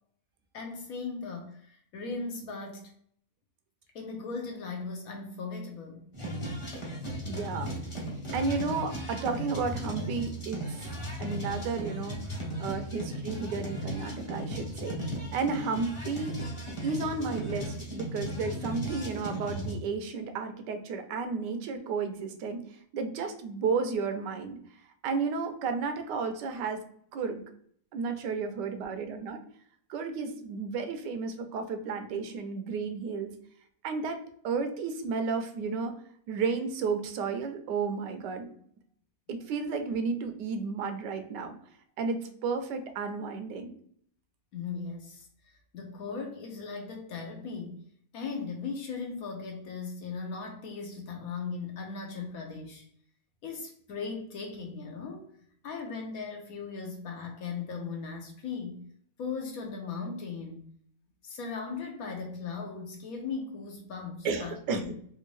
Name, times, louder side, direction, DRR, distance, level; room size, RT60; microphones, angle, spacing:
voice 1, 0.5-2.9 3.9-6.1 44.5-47.8 48.1-52.8 53.4-55.2 55.6-58.8 59.2-60.6 61.2-65.0, left 4 dB, 65° left, 2 dB, 1.0 m, -38 dB
sound 1, 6.1-19.7, equal, 25° left, 0.8 m, -36 dB
voice 2, 7.3-7.7 8.3-10.9 11.2-12.2 12.6-15.0 15.3-16.4 16.8-22.6 22.9-24.6 25.0-26.8 27.1-27.4 27.9-29.4 29.9-33.3 33.8-35.9 36.3-38.5 39.3-41.6 42.0-43.7 64.2-65.0, right 4 dB, 80° right, 7 dB, 1.2 m, -32 dB
3.4 x 2.5 x 3.1 m, 0.64 s
omnidirectional pair, 1.8 m